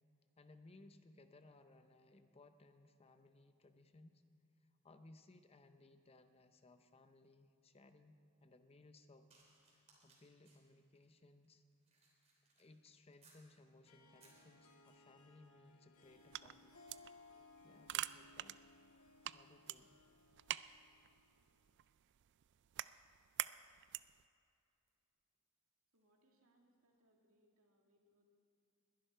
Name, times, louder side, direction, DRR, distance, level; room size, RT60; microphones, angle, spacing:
voice 1, 0.4-4.2 4.8-8.2 8.4-9.3 9.7-11.6 12.6-16.7 17.6-18.7 19.3-20.0, left 2 dB, 30° left, 9 dB, 0.6 m, -64 dB
sound 1, 9.3-13.5 13.9-15.2 16.0-16.2 16.5-26.2 26.9-27.0, right 3 dB, 30° right, 3.3 m, -75 dB
Harp, 13.8-21.6, left 3 dB, 90° left, 1.7 m, -64 dB
sound 2, 16.0-24.3, right 14 dB, 55° right, 0.3 m, -48 dB
voice 2, 25.9-28.2, right 1 dB, 70° right, 1 dB, 2.2 m, -75 dB
21.0 x 11.5 x 4.5 m, 2.5 s
head